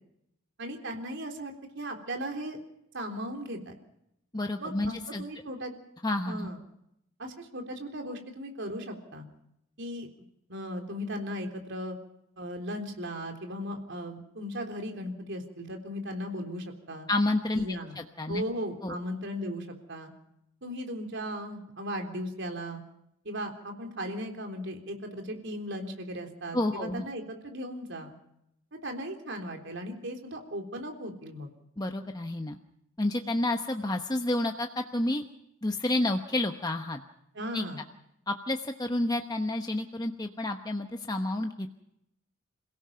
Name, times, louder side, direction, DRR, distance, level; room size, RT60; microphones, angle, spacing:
voice 1, 0.6-2.6 2.9-3.7 4.6-5.7 6.3-6.6 7.2-9.3 9.8-10.1 10.5-12.0 12.4-17.1 17.5-18.0 18.3-20.1 20.6-22.8 23.2-28.1 28.8-31.5 37.3-37.8, equal, 60° right, 4 dB, 3.7 m, -37 dB
voice 2, 4.3-5.2 6.0-6.5 17.1-17.7 18.0-18.4 18.8-19.0 26.5-27.1 31.8-32.6 33.0-35.2 35.6-37.0 37.5-37.7 38.3-41.8, left 1 dB, 20° left, 5 dB, 1.0 m, -30 dB
28.0 x 17.0 x 5.7 m, 0.78 s
head